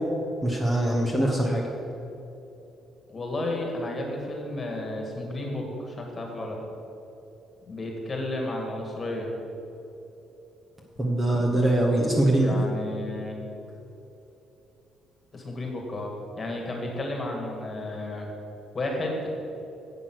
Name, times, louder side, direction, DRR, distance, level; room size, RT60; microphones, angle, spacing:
voice 1, 0.4-1.7 11.0-12.6, right 1 dB, 15° right, -1 dB, 1.2 m, -23 dB
voice 2, 3.1-6.6 7.7-9.3 12.3-13.4 15.3-16.1 16.4-18.3 18.7-19.3, left 1 dB, 25° left, 1 dB, 2.0 m, -32 dB
10.5 x 7.9 x 6.4 m, 3.0 s
cardioid pair, 150°, 0 cm